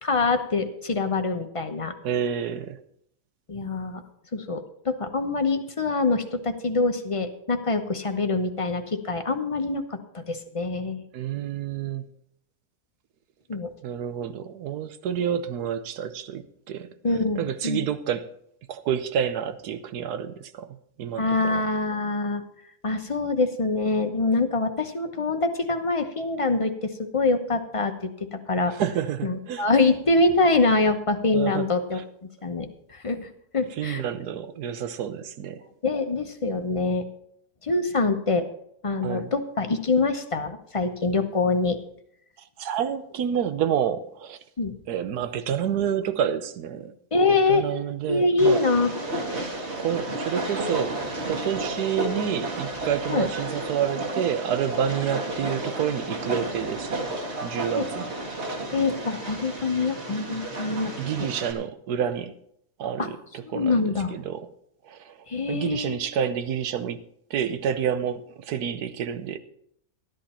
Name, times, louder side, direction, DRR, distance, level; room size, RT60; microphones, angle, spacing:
voice 1, 0.0-1.9 3.5-4.0 4.3-11.0 13.5-13.7 17.0-17.9 21.2-22.4 22.8-28.7 29.2-32.0 32.4-34.0 35.8-37.1 37.6-38.4 38.8-41.8 44.6-44.8 47.1-47.6 48.1-48.9 53.1-53.3 57.8-57.9 58.7-60.9 63.0-63.1 63.4-64.2 65.3-66.0, left 3 dB, 30° left, 0.7 m, -25 dB
voice 2, 2.0-2.8 11.1-12.0 13.8-16.9 17.4-18.3 18.7-21.6 28.8-29.7 31.3-31.7 31.9-32.0 33.8-35.6 39.0-39.3 42.6-44.4 44.9-46.9 47.3-48.6 49.8-57.1 57.4-58.1 61.0-62.3 62.8-64.5 64.8-65.2 65.5-67.0 67.3-69.4, right 9 dB, 85° right, 1.3 m, -29 dB
Train, 48.4-61.5, right 2 dB, 45° right, 1.9 m, -32 dB
13.0 x 11.0 x 4.3 m
omnidirectional pair, 1.7 m